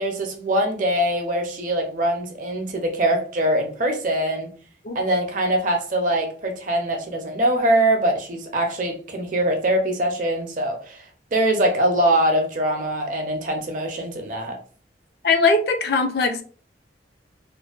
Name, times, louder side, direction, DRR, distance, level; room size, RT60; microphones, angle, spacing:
voice 1, 0.0-4.5 4.9-11.0 11.3-14.6, right 1 dB, 45° right, 0.5 m, -23 dB
voice 2, 15.2-16.4, left 3 dB, 60° left, 0.4 m, -20 dB
2.5 x 2.1 x 2.4 m
head